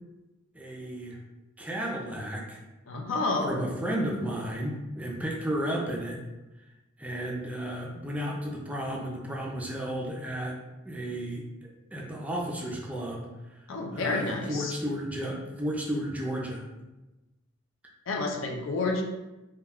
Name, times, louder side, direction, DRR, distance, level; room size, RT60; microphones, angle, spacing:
voice 1, 0.5-1.2 1.6-2.6 3.4-6.2 7.0-10.6 10.8-11.4 11.9-13.3 13.9-16.6, equal, 5° right, -3 dB, 0.4 m, -33 dB
voice 2, 2.9-3.8 13.7-14.7 18.1-19.0, left 3 dB, 70° left, 2 dB, 0.4 m, -29 dB
2.3 x 2.2 x 3.4 m, 1.0 s
head